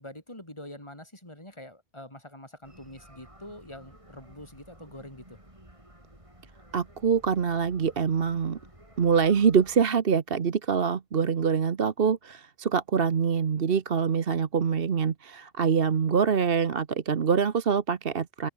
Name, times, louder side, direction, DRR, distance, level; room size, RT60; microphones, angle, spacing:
voice 1, 0.0-5.4, left 1 dB, 25° left, 6.4 m, -45 dB
sound 1, 2.6-9.9, right 1 dB, 30° right, 6.2 m, -53 dB
voice 2, 6.7-8.6 9.0-18.5, right 6 dB, 65° right, 1.3 m, -25 dB
open air
omnidirectional pair, 1.0 m